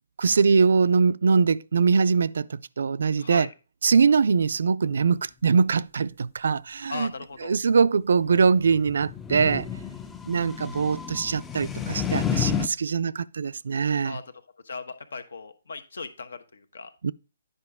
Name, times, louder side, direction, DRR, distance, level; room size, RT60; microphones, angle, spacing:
voice 1, 0.2-3.5 3.8-7.1 7.4-9.7 10.3-14.2 17.0-17.1, right 5 dB, 70° right, 0.3 m, -22 dB
voice 2, 3.2-3.5 6.9-7.6 14.0-14.2 14.6-16.9, left 4 dB, 80° left, 1.1 m, -37 dB
sound 1, 8.4-12.7, left 8 dB, 10° left, 0.4 m, -31 dB
9.6 x 5.2 x 3.5 m
hypercardioid pair, 165°, 0 cm